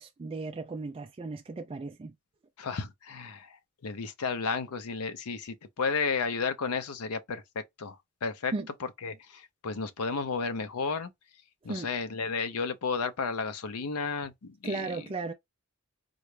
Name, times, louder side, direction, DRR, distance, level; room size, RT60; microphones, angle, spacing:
voice 1, 0.0-2.1 8.5-8.7 11.7-11.9 14.6-15.3, right 3 dB, 25° right, 0.3 m, -35 dB
voice 2, 2.6-3.5 3.8-8.0 8.2-8.5 9.0-11.1 11.6-15.0, left 5 dB, 85° left, 0.6 m, -33 dB
3.7 x 2.3 x 3.1 m
head